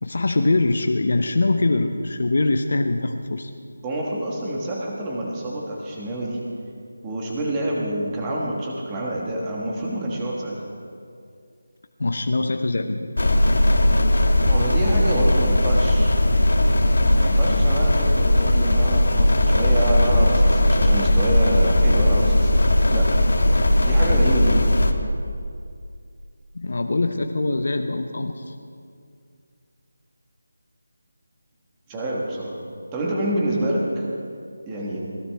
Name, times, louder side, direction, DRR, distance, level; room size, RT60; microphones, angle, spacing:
voice 1, 0.0-3.5 12.0-13.1 26.5-28.5, left 2 dB, 50° left, 6 dB, 0.7 m, -23 dB
voice 2, 3.8-6.4 7.0-10.7 14.4-16.1 17.2-23.2 23.8-24.7 31.9-32.6 32.9-34.0 34.7-35.0, right 1 dB, 10° right, -3 dB, 1.4 m, -27 dB
sound 1, 13.2-24.9, left 1 dB, 70° left, 1.4 m, -18 dB
20.5 x 17.5 x 3.4 m, 2.3 s
figure-of-eight pair, 180°, 0 cm